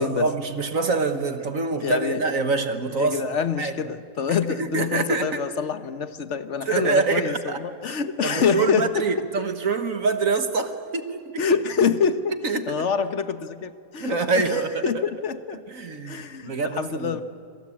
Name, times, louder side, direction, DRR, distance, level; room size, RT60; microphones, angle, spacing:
voice 1, 0.0-3.2 3.6-3.7 4.5-5.3 6.7-7.6 8.2-11.4 12.4-12.9 14.0-14.8 15.7-17.2, right 4 dB, 45° right, 1.6 m, -25 dB
voice 2, 1.8-2.2 2.9-9.3 11.4-15.6 16.1-17.2, left 6 dB, 45° left, 1.1 m, -26 dB
27.0 x 25.5 x 8.6 m
omnidirectional pair, 2.3 m